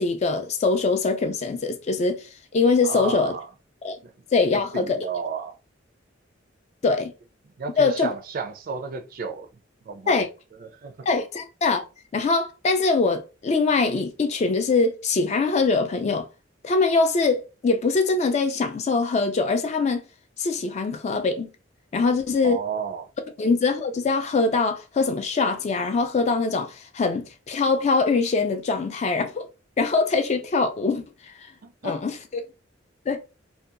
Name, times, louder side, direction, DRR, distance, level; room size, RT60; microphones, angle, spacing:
voice 1, 0.0-3.3 3.8-4.0 4.3-5.0 6.8-7.1 7.8-8.1 10.1-10.2 11.1-11.8 12.1-16.3 16.6-20.0 20.4-21.5 21.9-22.6 23.4-29.5 29.8-31.3 31.8-32.4 33.1-33.2, left 4 dB, 35° left, 0.3 m, -23 dB
voice 2, 2.8-3.5 4.0-4.1 4.5-5.6 7.6-9.5 9.8-10.2 10.5-11.1 22.4-23.1 31.6-32.2, right 5 dB, 50° right, 0.4 m, -33 dB
2.7 x 2.2 x 2.4 m
head